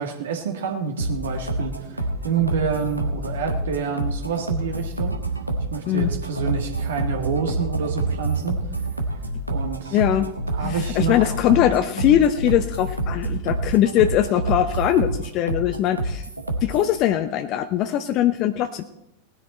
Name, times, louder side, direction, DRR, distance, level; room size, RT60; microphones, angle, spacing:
voice 1, 0.0-5.2 5.7-8.6 9.5-10.0 10.5-11.3, right 6 dB, 60° right, 2 dB, 1.8 m, -28 dB
sound 1, 1.0-17.0, right 2 dB, 85° right, 1.5 m, -27 dB
voice 2, 9.9-16.2 16.6-18.8, left 11 dB, 40° left, 9 dB, 0.7 m, -21 dB
19.0 x 10.0 x 4.3 m, 0.86 s
figure-of-eight pair, 90°, 0 cm